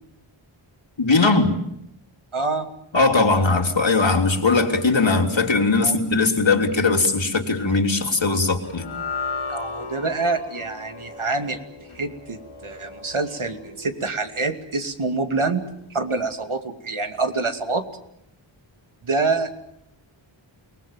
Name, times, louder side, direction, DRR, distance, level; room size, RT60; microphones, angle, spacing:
voice 1, 1.0-1.5 2.9-8.9, left 3 dB, 65° left, 3 dB, 3.3 m, -19 dB
voice 2, 2.3-2.7 5.8-6.0 9.5-11.6 11.9-15.6 15.9-17.8 19.0-19.6, right 3 dB, 80° right, 6 dB, 2.6 m, -26 dB
sound 1, 8.6-15.0, left 4 dB, 80° left, 4.3 m, -36 dB
29.5 x 19.5 x 7.5 m, 0.78 s
wide cardioid pair, 60°, 49 cm